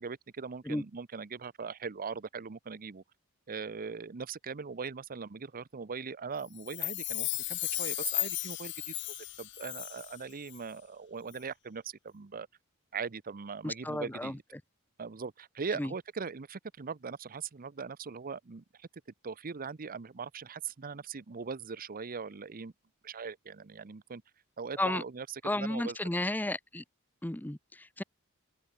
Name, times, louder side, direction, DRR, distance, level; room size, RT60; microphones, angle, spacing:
voice 1, 0.0-3.0 3.5-12.5 12.9-14.4 15.0-18.9 19.2-22.7 23.0-24.2 24.6-25.3 25.5-26.0, right 5 dB, 40° right, 0.7 m, -40 dB
Chime, 6.6-10.2 10.5-10.6, left 18 dB, 55° left, 1.1 m, -35 dB
voice 2, 13.6-14.4 15.8-15.9 24.8-25.0 25.4-26.8 27.2-28.0, left 1 dB, 10° left, 0.7 m, -33 dB
open air
head